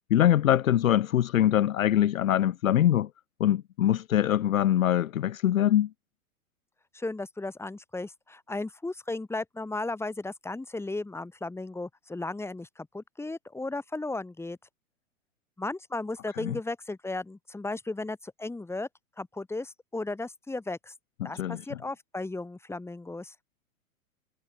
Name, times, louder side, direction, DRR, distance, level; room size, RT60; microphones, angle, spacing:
voice 1, 0.1-3.1 3.4-5.9 16.4-16.6 21.2-21.6, left 11 dB, 65° left, 0.9 m, -23 dB
voice 2, 6.9-14.6 15.6-18.9 19.2-20.9 21.2-23.3, left 2 dB, 5° left, 4.1 m, -35 dB
figure-of-eight pair, 105°, 44 cm